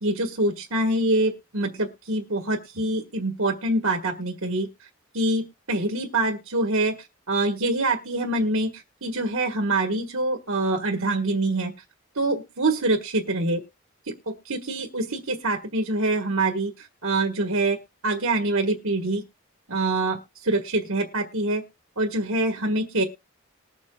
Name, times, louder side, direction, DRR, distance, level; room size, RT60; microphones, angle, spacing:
voice 1, 0.0-4.7 5.1-7.0 7.3-11.7 12.1-13.6 14.1-17.8 18.0-19.2 19.7-21.6 22.0-23.0, right 2 dB, 80° right, 4 dB, 1.7 m, -25 dB
20.5 x 7.2 x 2.4 m, 0.27 s
head